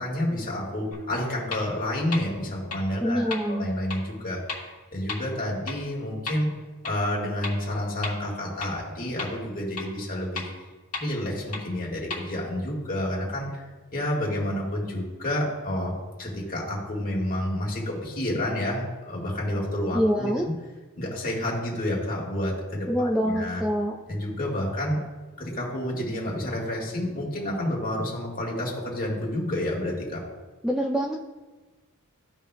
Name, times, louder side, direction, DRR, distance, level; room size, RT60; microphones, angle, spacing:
voice 1, 0.0-4.4 4.9-6.5 6.8-10.5 11.0-13.6 13.9-15.9 16.2-20.3 21.0-23.6 24.1-25.0 25.4-30.2, left 1 dB, 40° left, -3 dB, 1.9 m, -29 dB
sound 1, 0.9-1.0 1.5-1.6 2.1-2.2 2.7-2.8 3.3-3.4 3.9-4.0 4.5-4.6 5.1-5.2 5.7-5.8 6.3-6.4 6.8-6.9 7.4-7.5 8.0-8.1 8.6-8.7 9.2-9.3 9.8-9.9 10.4-10.5 10.9-11.0 11.5-11.6 12.1-12.2, left 4 dB, 85° left, 1.8 m, -32 dB
voice 2, 3.0-3.7 19.9-20.5 22.9-24.0 30.6-31.2, equal, ahead, -2 dB, 0.4 m, -25 dB
14.5 x 5.3 x 2.2 m, 1.3 s
head